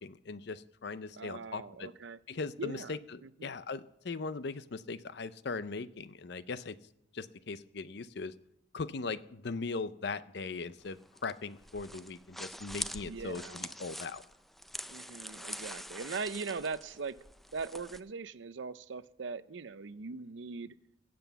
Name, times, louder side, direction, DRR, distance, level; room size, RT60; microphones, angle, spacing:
voice 1, 0.0-1.9 2.3-6.8 7.1-8.3 8.7-14.2, left 4 dB, 60° left, 15 dB, 0.6 m, -39 dB
voice 2, 1.2-2.2 2.6-3.0 3.2-3.5 13.1-13.7 14.9-17.1 17.5-20.7, right 4 dB, 75° right, 16 dB, 0.6 m, -40 dB
sound 1, 10.8-18.0, equal, ahead, 0.4 m, -44 dB
16.5 x 7.8 x 6.9 m, 0.79 s
head